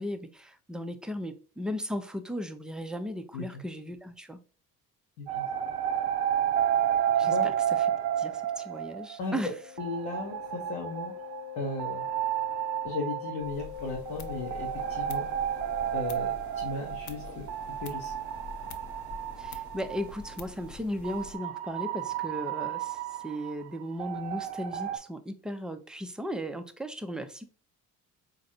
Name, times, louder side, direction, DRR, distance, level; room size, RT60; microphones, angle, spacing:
voice 1, 0.0-4.4 7.2-7.5 8.2-9.5 19.4-27.5, equal, ahead, 0.3 m, -36 dB
sound 1, 5.3-9.4 9.8-20.4 21.0-25.0, right 10 dB, 75° right, 0.5 m, -31 dB
Wind instrument woodwind instrument, 9.2-16.2, left 9 dB, 65° left, 1.0 m, -44 dB
voice 2, 9.8-11.1 11.6-12.1 12.8-15.3 15.9-17.4 17.8-18.1, left 3 dB, 90° left, 0.9 m, -36 dB
sound 2, 13.4-21.4, left 5 dB, 40° left, 0.6 m, -46 dB
3.9 x 2.5 x 2.7 m
hypercardioid pair, 55°, 46 cm